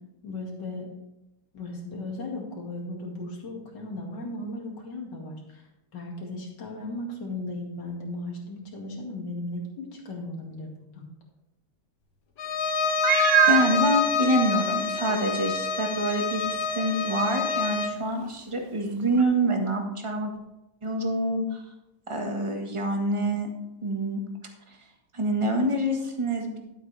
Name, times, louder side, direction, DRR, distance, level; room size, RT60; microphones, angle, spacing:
voice 1, 0.2-0.9 1.5-5.6 5.9-11.1, left 2 dB, 65° left, -1 dB, 2.7 m, -36 dB
Bowed string instrument, 12.4-18.0, left 5 dB, 85° left, 2.0 m, -27 dB
Meow, 13.0-13.7 14.5-14.6 15.1-15.2 19.2-19.3, right 13 dB, 80° right, 0.7 m, -21 dB
voice 2, 13.5-20.3 20.8-21.6 22.1-23.5 23.8-24.2 24.7-24.8 25.1-26.6, right 1 dB, 20° right, 2 dB, 1.3 m, -26 dB
12.0 x 8.2 x 3.4 m, 0.93 s
omnidirectional pair, 2.1 m